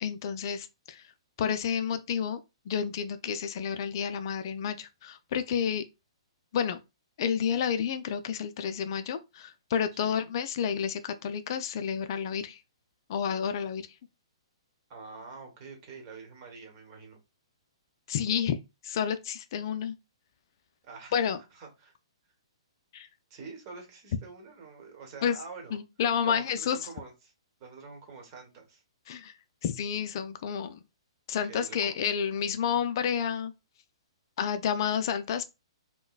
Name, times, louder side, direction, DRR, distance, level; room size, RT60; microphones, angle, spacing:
voice 1, 0.0-1.0 1.4-2.4 2.7-5.8 6.5-6.8 7.2-12.6 13.1-13.8 18.1-18.6 18.8-19.9 21.1-21.4 22.9-23.1 25.2-25.4 25.7-26.8 29.1-29.3 29.6-30.8 31.3-33.5 34.4-35.5, left 7 dB, 50° left, 0.3 m, -30 dB
voice 2, 10.0-10.3 14.9-17.2 20.8-21.2 21.5-21.9 23.3-25.8 26.2-27.3 27.6-28.8 31.4-32.0, right 4 dB, 40° right, 1.2 m, -46 dB
3.8 x 2.2 x 2.3 m
figure-of-eight pair, 120°, 3 cm